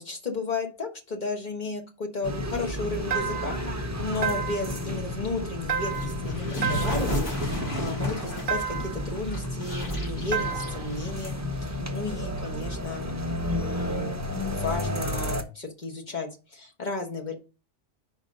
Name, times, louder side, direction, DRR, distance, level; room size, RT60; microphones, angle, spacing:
voice 1, 0.0-13.2 13.5-14.2 14.4-17.3, left 3 dB, 40° left, 3 dB, 1.4 m, -34 dB
sound 1, 2.2-15.4, left 1 dB, 15° right, 0.6 m, -32 dB
sound 2, 3.1-3.7 4.2-4.8 5.7-6.2 6.6-7.2 8.5-9.0 10.3-10.9, right 6 dB, 55° right, 0.6 m, -30 dB
sound 3, 5.7-11.6, equal, 55° left, 2.8 m, -34 dB
5.2 x 5.0 x 5.2 m, 0.32 s
omnidirectional pair, 1.3 m